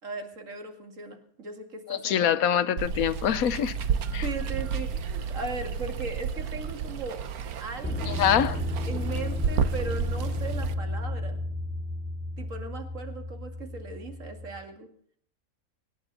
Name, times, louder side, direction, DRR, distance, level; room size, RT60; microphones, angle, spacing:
voice 1, 0.0-2.3 4.2-7.2 7.6-8.3 8.8-11.4 12.4-14.9, right 3 dB, 60° right, 2.7 m, -38 dB
voice 2, 1.9-3.7 4.1-4.2 8.1-8.6, left 9 dB, 75° left, 1.2 m, -24 dB
Water, 2.8-10.7, right 6 dB, 80° right, 1.4 m, -32 dB
sound 1, 7.8-14.6, left 1 dB, 5° left, 2.5 m, -33 dB
25.0 x 9.9 x 4.1 m
omnidirectional pair, 1.5 m